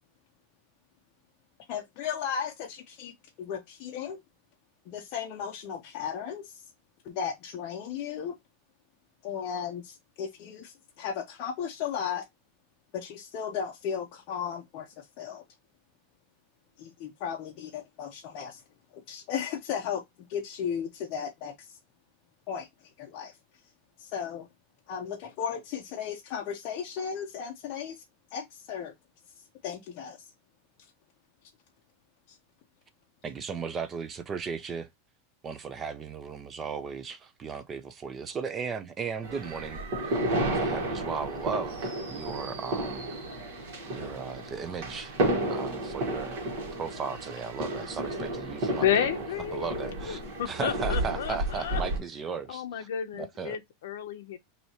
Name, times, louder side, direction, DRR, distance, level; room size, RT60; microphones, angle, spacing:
voice 1, 1.7-3.1 3.4-4.2 4.9-6.6 7.0-8.4 9.2-12.3 12.9-15.4 16.8-18.6 19.1-20.0 20.3-21.5 22.5-22.7 23.0-23.3 24.0-24.5 24.9-28.0 28.3-28.9 29.6-30.3 32.3-32.4, left 7 dB, 40° left, 0.6 m, -35 dB
voice 2, 33.2-34.9 35.4-43.1 43.9-45.2 45.5-46.5 46.8-49.3 49.5-52.9 53.1-53.6, right 6 dB, 15° right, 0.4 m, -36 dB
sound 1, 39.2-52.0, right 1 dB, 50° right, 1.5 m, -32 dB
voice 3, 48.8-51.8 52.5-54.4, left 9 dB, 85° left, 0.5 m, -31 dB
4.3 x 2.7 x 2.8 m
supercardioid pair, 175°, 0 cm